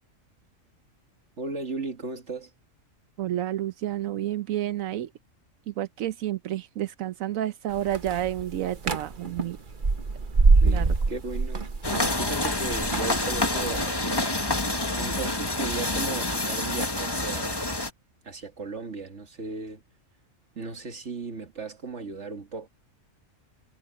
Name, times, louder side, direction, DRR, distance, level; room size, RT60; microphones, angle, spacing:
voice 1, 1.4-2.5 10.6-11.6 12.2-14.3 15.0-17.8 18.2-19.8 20.6-22.7, right 3 dB, 60° right, 2.4 m, -36 dB
voice 2, 3.2-5.1 5.7-9.6 10.6-10.9, right 12 dB, 85° right, 1.1 m, -30 dB
sound 1, 7.7-13.9, right 3 dB, 40° right, 1.4 m, -25 dB
sound 2, 11.8-17.9, left 2 dB, 20° left, 1.7 m, -27 dB
omnidirectional pair, 1.4 m